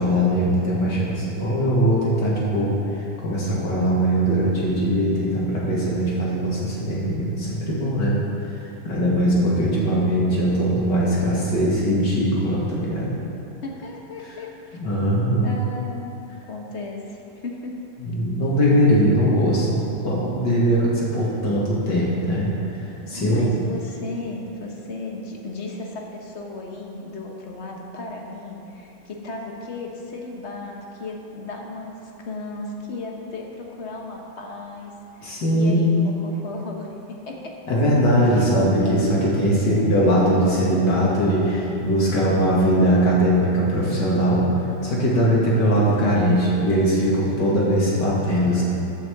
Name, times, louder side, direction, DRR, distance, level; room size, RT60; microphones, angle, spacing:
voice 1, 0.0-8.2 8.8-13.1 14.7-15.5 18.0-23.5 35.2-35.8 37.7-44.5 44.8-48.6, equal, 70° left, -6 dB, 2.8 m, -20 dB
voice 2, 9.4-10.2 13.6-14.8 15.4-16.1 16.4-17.8 23.1-37.5 38.2-38.5 39.4-40.1, left 2 dB, 45° left, 0 dB, 1.2 m, -35 dB
14.0 x 8.7 x 3.5 m, 2.9 s
omnidirectional pair, 1.9 m